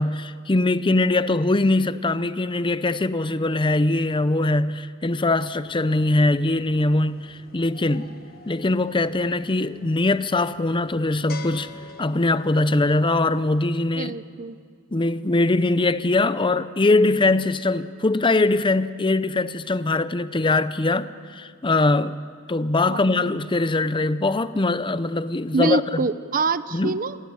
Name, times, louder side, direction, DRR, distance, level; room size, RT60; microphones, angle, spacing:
voice 1, 0.0-8.1 8.5-11.7 12.0-14.1 14.9-22.2 22.5-26.0 26.7-26.9, left 2 dB, 20° left, 0.6 m, -22 dB
sound 1, 5.6-13.7, left 3 dB, 45° left, 1.3 m, -46 dB
voice 2, 14.0-14.6 22.9-23.3 25.5-27.2, right 3 dB, 40° right, 0.7 m, -25 dB
27.0 x 18.0 x 9.7 m
head